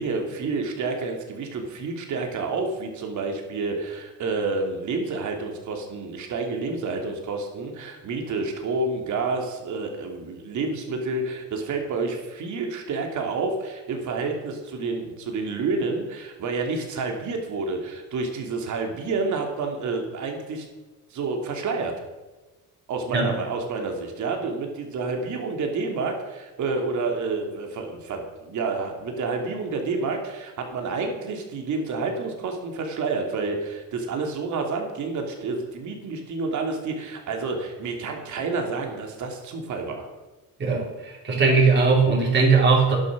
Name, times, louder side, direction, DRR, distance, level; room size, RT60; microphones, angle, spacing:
voice 1, 0.0-20.6 21.1-21.9 22.9-40.1, right 3 dB, 55° right, 3 dB, 3.0 m, -29 dB
voice 2, 41.2-43.0, right 4 dB, 30° right, -2 dB, 4.2 m, -19 dB
12.0 x 11.0 x 6.4 m, 1.2 s
cardioid pair, 150°, 34 cm